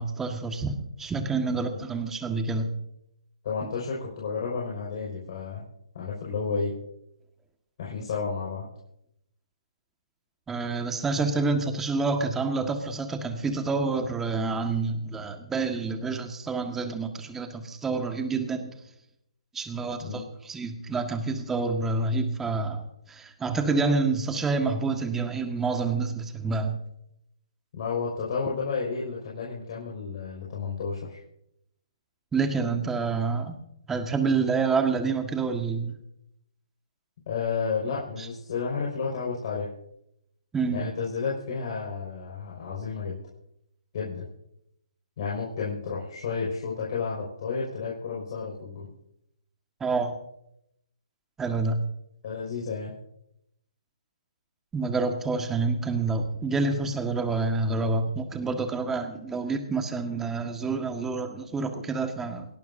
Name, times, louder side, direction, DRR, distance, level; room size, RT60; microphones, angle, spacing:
voice 1, 0.0-2.7 10.5-18.7 19.5-22.8 23.1-26.8 32.3-33.6 33.9-35.9 40.5-40.9 49.8-50.1 51.4-51.8 54.7-62.5, right 4 dB, 10° right, 5 dB, 1.7 m, -28 dB
voice 2, 3.4-5.6 5.9-6.7 7.8-8.7 20.0-20.2 27.7-31.2 37.3-39.7 40.7-43.2 43.9-44.2 45.2-48.9 52.2-52.9, left 5 dB, 50° left, -4 dB, 5.5 m, -31 dB
28.5 x 11.5 x 2.8 m, 0.79 s
figure-of-eight pair, 140°, 3 cm